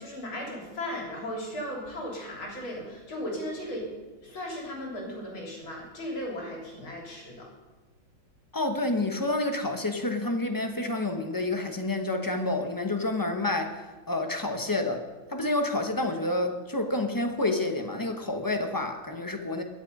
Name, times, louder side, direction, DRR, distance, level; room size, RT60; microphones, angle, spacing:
voice 1, 0.0-3.9 4.2-7.5, left 1 dB, 80° left, -2 dB, 4.3 m, -36 dB
voice 2, 8.5-15.0 15.3-19.6, left 2 dB, 25° left, 5 dB, 0.4 m, -29 dB
22.0 x 7.4 x 5.3 m, 1.2 s
omnidirectional pair, 2.2 m